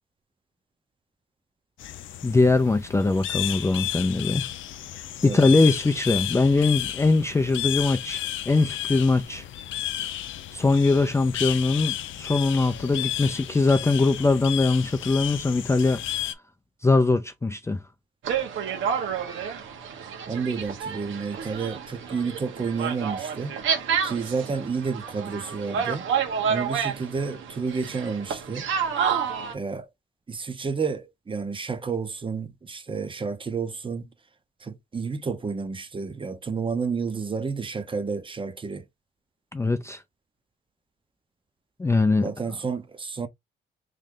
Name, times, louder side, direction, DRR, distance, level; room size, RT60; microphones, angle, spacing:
sound 1, 1.8-16.3, left 13 dB, 75° left, 0.6 m, -33 dB
voice 1, 2.2-4.4 5.2-9.4 10.5-16.0 16.8-17.8 39.5-40.0 41.8-42.3, left 3 dB, 15° left, 0.4 m, -22 dB
voice 2, 5.2-5.6 20.3-23.5 24.0-26.1 26.5-28.7 29.5-29.9 30.3-34.1 34.6-38.9 42.2-43.3, right 5 dB, 25° right, 0.7 m, -30 dB
sound 2, 18.2-29.5, right 7 dB, 75° right, 1.2 m, -29 dB
3.2 x 2.6 x 3.7 m
cardioid pair, 90°, 20 cm